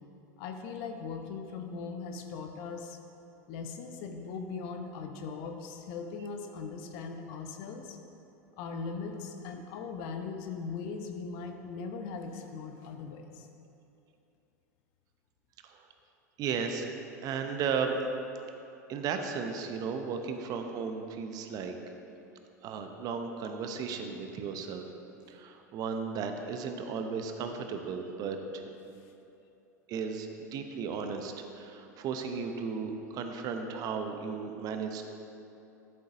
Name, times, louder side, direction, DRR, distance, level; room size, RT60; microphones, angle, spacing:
voice 1, 0.4-3.0 3.5-8.0 8.6-13.5, left 5 dB, 55° left, 5 dB, 0.8 m, -39 dB
voice 2, 16.4-16.9 17.2-18.0 18.9-21.8 22.6-24.9 25.3-28.7 29.9-35.0, right 5 dB, 40° right, 5 dB, 0.7 m, -35 dB
11.0 x 7.8 x 2.6 m, 2.8 s
hypercardioid pair, 85°, 9 cm